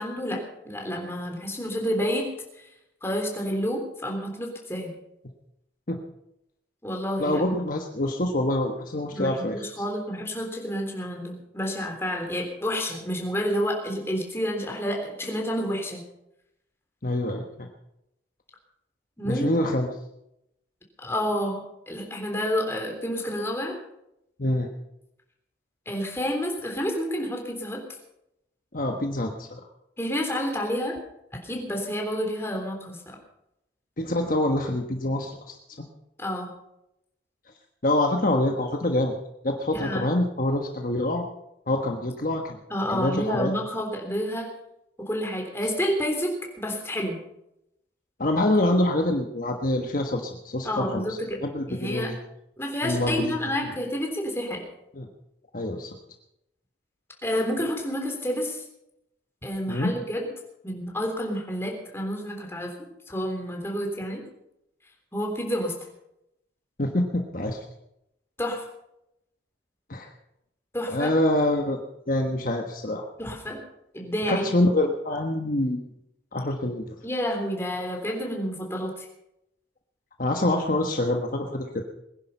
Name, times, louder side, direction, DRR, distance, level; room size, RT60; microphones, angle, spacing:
voice 1, 0.0-2.3 2.6-2.7 3.0-4.9 6.8-7.6 9.1-16.0 19.2-19.5 21.0-23.8 25.8-27.8 30.0-30.9 31.4-33.2 36.2-36.5 39.7-40.1 42.7-44.5 45.0-46.3 46.6-47.2 50.6-51.4 51.7-52.1 52.6-54.6 57.2-58.6 59.4-60.3 60.6-62.7 63.1-64.2 65.1-65.7 68.4-68.6 70.7-71.1 73.2-73.6 73.9-74.5 77.0-79.1, equal, 15° left, 1 dB, 3.5 m, -29 dB
voice 2, 7.2-9.6 17.0-17.7 19.2-19.9 24.4-24.7 28.7-29.6 34.0-35.9 37.8-39.2 39.4-41.2 41.7-42.6 42.9-43.5 48.2-52.2 52.8-53.3 55.0-55.1 55.5-55.9 59.7-59.9 66.8-67.6 69.9-70.1 70.9-71.8 72.1-73.0 74.3-75.8 76.3-76.9 80.2-81.8, left 1 dB, 50° left, 3 dB, 1.3 m, -26 dB
21.0 x 10.5 x 5.6 m, 0.83 s
head